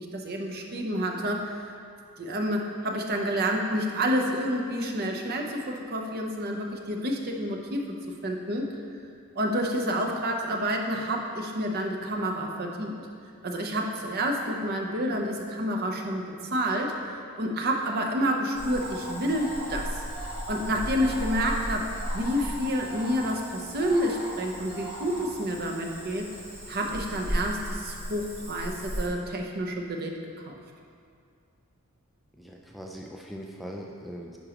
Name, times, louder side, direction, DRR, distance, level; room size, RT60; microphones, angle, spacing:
voice 1, 0.0-1.7 2.2-7.9 8.2-8.8 9.4-13.0 13.4-16.2 16.5-16.9 17.4-20.0 20.5-26.3 26.7-30.2 30.5-30.6, equal, 45° right, 1 dB, 0.7 m, -29 dB
Cricket / Frog, 18.5-29.1, equal, 25° right, 1.6 m, -36 dB
voice 2, 32.3-34.4, equal, ahead, -2 dB, 0.4 m, -41 dB
9.9 x 5.3 x 2.9 m, 2.2 s
head